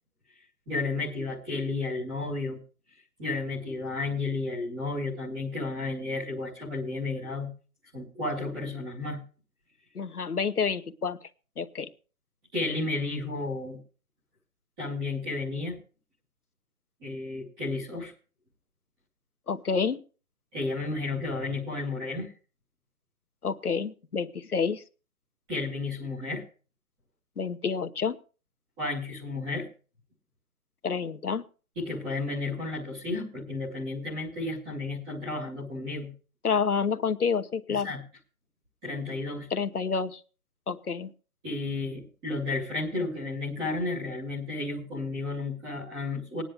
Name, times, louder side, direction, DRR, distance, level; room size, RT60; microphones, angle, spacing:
voice 1, 0.7-2.6 3.2-7.5 7.9-9.2 12.5-13.8 14.8-15.8 17.0-18.1 20.5-22.3 25.5-26.4 28.8-29.7 31.8-36.1 37.7-38.0 38.8-39.5 41.4-46.4, left 3 dB, 5° right, -7 dB, 0.5 m, -32 dB
voice 2, 9.9-11.2 11.6-11.9 19.5-20.0 23.4-24.8 27.4-28.2 30.8-31.4 36.4-37.9 39.5-40.2 40.7-41.1, left 5 dB, 90° left, 9 dB, 1.3 m, -28 dB
18.0 x 10.0 x 3.5 m, 0.36 s
figure-of-eight pair, 145°, 43 cm